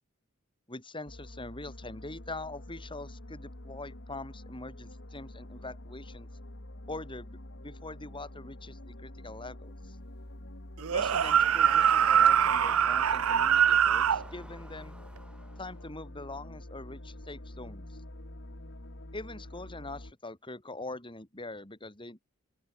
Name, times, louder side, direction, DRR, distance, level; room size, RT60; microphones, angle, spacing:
voice 1, 0.7-6.3 6.9-10.0 10.9-15.0 15.6-18.0 19.1-22.2, left 2 dB, 25° left, 4.0 m, -43 dB
sound 1, 1.1-20.1, left 1 dB, 60° left, 2.8 m, -46 dB
sound 2, 10.8-14.2, right 8 dB, 85° right, 0.6 m, -23 dB
sound 3, 10.9-15.9, right 1 dB, 5° right, 1.8 m, -47 dB
open air
head